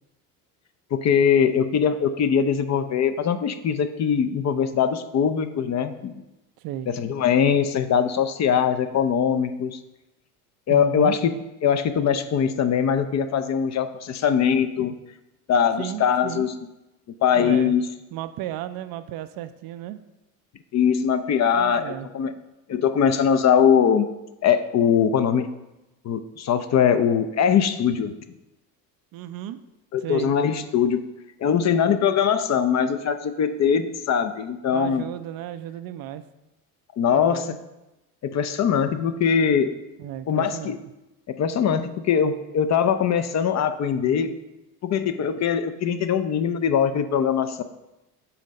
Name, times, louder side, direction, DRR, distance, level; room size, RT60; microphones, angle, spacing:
voice 1, 0.9-6.1 6.9-9.8 10.7-11.3 11.6-14.9 15.5-16.5 17.2-17.8 20.7-22.3 22.7-24.1 24.4-25.5 26.0-28.1 29.9-31.0 31.4-35.0 37.0-37.5 38.2-39.7 40.3-40.8 41.3-44.3 44.8-47.6, left 7 dB, 40° left, 9 dB, 0.5 m, -21 dB
voice 2, 6.6-6.9 10.7-11.2 15.8-16.5 17.4-17.8 18.1-20.0 21.5-22.1 29.1-29.6 30.0-30.3 34.7-36.2 37.1-37.6 40.0-40.8, right 12 dB, 55° right, 11 dB, 0.5 m, -34 dB
5.7 x 4.0 x 5.3 m, 0.97 s
hypercardioid pair, 70°, 45 cm